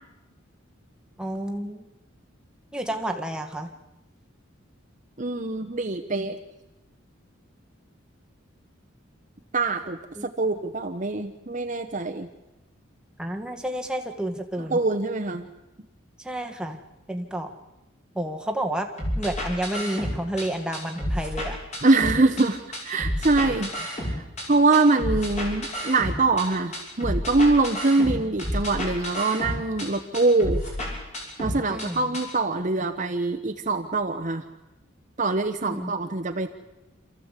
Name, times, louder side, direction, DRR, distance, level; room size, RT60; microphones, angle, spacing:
voice 1, 1.2-1.8 2.7-3.7 10.1-10.3 13.2-14.8 16.2-16.8 17.1-17.5 18.1-18.9 19.2-21.6 23.4-23.6 31.7-32.1 35.7-35.9, right 1 dB, 5° right, 3 dB, 1.6 m, -30 dB
voice 2, 5.2-6.4 9.5-10.0 10.4-12.3 14.7-15.5 21.8-23.7 24.1-24.2 24.5-30.6 31.4-34.4 35.2-36.5, right 3 dB, 40° right, 6 dB, 1.0 m, -23 dB
sound 1, 19.0-20.4 20.7-22.4 22.7-24.4 24.7-26.4 26.7-29.9 30.1-31.9 32.1-32.2, equal, 35° left, 6.4 m, -30 dB
27.5 x 14.5 x 8.3 m, 1.0 s
head